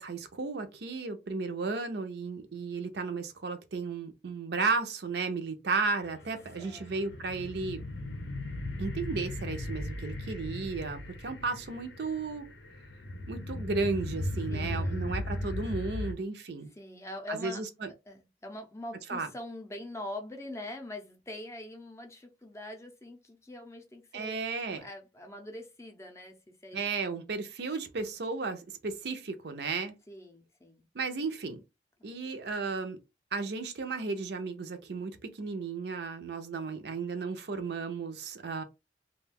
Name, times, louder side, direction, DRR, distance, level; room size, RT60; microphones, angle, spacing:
voice 1, 0.0-7.8 8.8-12.5 13.3-16.7 17.3-17.9 19.1-19.3 24.1-24.8 26.7-29.9 30.9-31.6 32.0-33.0 33.3-38.6, right 4 dB, 65° right, 0.5 m, -34 dB
sound 1, 6.0-16.1, left 1 dB, 90° left, 0.7 m, -37 dB
voice 2, 6.6-6.9 14.5-15.1 16.7-17.6 18.1-24.4 24.7-27.3 30.1-30.8 32.0-32.1, left 1 dB, 15° left, 0.5 m, -43 dB
2.4 x 2.2 x 3.3 m
head